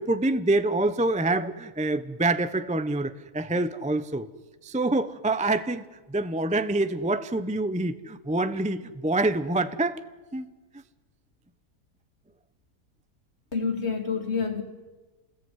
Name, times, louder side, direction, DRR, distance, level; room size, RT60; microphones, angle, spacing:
voice 1, 0.0-4.3 4.6-10.0 10.3-10.8, right 2 dB, 5° right, 0.6 m, -26 dB
voice 2, 13.5-14.6, left 5 dB, 45° left, 3.1 m, -28 dB
28.5 x 20.5 x 9.6 m
omnidirectional pair, 1.6 m